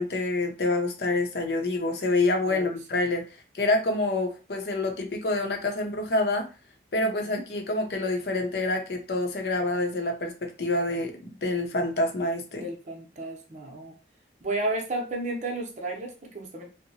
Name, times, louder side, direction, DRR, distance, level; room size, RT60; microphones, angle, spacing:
voice 1, 0.0-3.3 3.5-6.5 6.9-12.7, left 2 dB, 65° left, 3 dB, 0.7 m, -27 dB
voice 2, 7.0-7.4 12.5-13.9 14.4-16.7, right 2 dB, 40° right, 1 dB, 0.6 m, -33 dB
2.7 x 2.1 x 2.7 m, 0.31 s
head